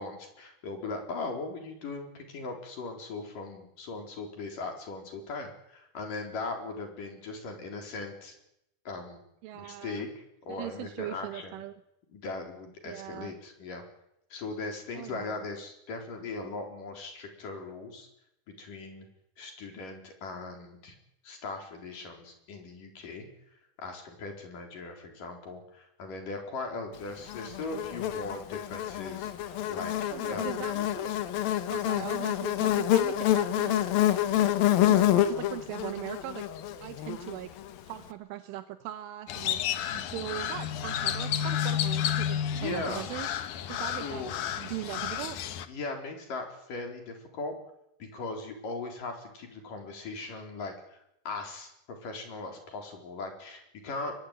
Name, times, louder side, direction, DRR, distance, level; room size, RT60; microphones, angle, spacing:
voice 1, 0.0-8.4 8.9-9.2 9.5-11.6 12.1-13.8 14.3-18.1 18.6-19.1 19.4-21.0 21.2-30.6 42.5-43.0 43.8-44.3 45.7-47.5 48.0-54.1, left 3 dB, 45° left, 3 dB, 5.5 m, -39 dB
voice 2, 9.4-10.1 10.5-11.8 12.9-13.3 14.9-15.4 16.5-16.6 30.1-31.1 31.7-33.9 34.4-34.6 34.8-36.5 36.8-37.5 37.8-39.6 39.9-43.3 43.7-44.2 44.6-45.4, right 14 dB, 85° right, 9 dB, 3.6 m, -40 dB
Buzz, 27.3-37.7, left 12 dB, 65° left, 2.5 m, -27 dB
Crow, 39.3-45.7, left 10 dB, 85° left, 1.8 m, -31 dB
22.5 x 20.5 x 9.1 m, 0.80 s
omnidirectional pair, 5.5 m